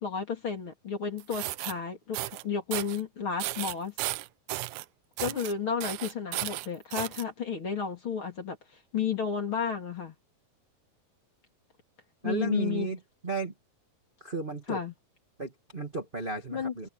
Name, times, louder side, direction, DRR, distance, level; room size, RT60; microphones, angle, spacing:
voice 1, 0.0-3.9 5.2-8.6 8.9-10.2 12.2-12.9 14.7-14.9 16.5-16.9, left 6 dB, 35° left, 3.5 m, -32 dB
sound 1, 1.2-1.7 2.1-2.4 2.7-3.0 3.4-4.8 5.2-5.5 5.8-7.2, right 17 dB, 90° right, 1.6 m, -34 dB
voice 2, 12.2-13.5 14.2-14.8 15.4-16.9, right 3 dB, 20° right, 1.6 m, -33 dB
omnidirectional pair, 4.1 m